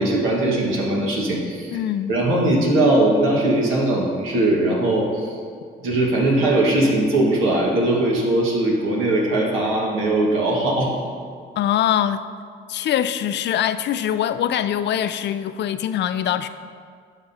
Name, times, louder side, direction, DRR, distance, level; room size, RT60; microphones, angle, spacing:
voice 1, 0.0-1.7 2.1-5.3 5.8-10.9, right 1 dB, 90° right, -3 dB, 1.6 m, -20 dB
voice 2, 1.7-2.1 11.6-12.3 12.7-16.5, left 10 dB, 60° left, 12 dB, 0.4 m, -23 dB
11.5 x 5.9 x 2.8 m, 2.1 s
cardioid pair, 90°, 20 cm